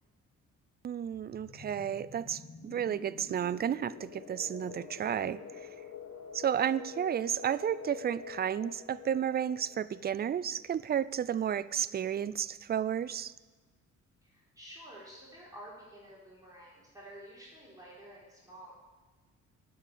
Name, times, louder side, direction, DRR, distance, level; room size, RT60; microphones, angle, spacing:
voice 1, 0.8-5.7 6.3-13.3, right 9 dB, 35° right, 17 dB, 0.4 m, -32 dB
sound 1, 1.0-11.5, left 6 dB, 70° left, 1.5 m, -48 dB
voice 2, 14.2-18.7, right 1 dB, 10° right, -7 dB, 4.1 m, -50 dB
9.4 x 7.0 x 8.2 m, 1.2 s
cardioid pair, 90°, 30 cm